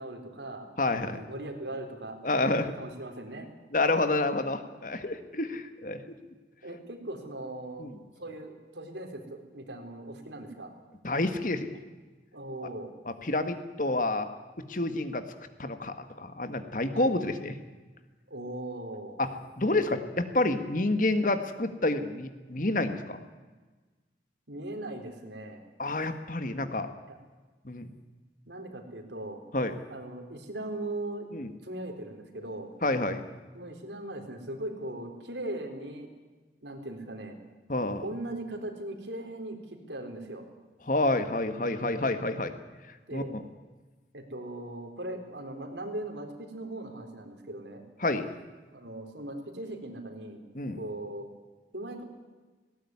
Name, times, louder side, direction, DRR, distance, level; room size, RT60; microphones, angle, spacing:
voice 1, 0.0-2.3 2.6-3.5 6.6-7.9 8.2-10.7 12.3-12.9 16.9-17.1 18.3-19.3 24.5-25.6 27.1-27.2 28.5-29.4 29.9-31.3 31.6-32.7 33.5-36.1 36.6-37.4 38.0-40.5 43.1-43.3 44.1-47.8 48.7-50.4 50.8-51.3 51.7-52.0, right 1 dB, 85° right, 5 dB, 4.1 m, -39 dB
voice 2, 0.8-1.2 2.2-2.7 3.7-6.0 7.8-7.9 11.0-11.7 13.2-14.3 14.7-15.2 15.6-17.6 19.2-19.3 19.6-23.2 25.8-26.9 27.6-27.9 29.5-29.7 31.3-31.5 32.8-33.2 37.7-38.0 40.9-42.5 43.1-43.4 48.0-48.3 50.5-50.8, left 2 dB, 45° left, 9 dB, 1.7 m, -28 dB
19.0 x 18.0 x 9.7 m, 1.3 s
head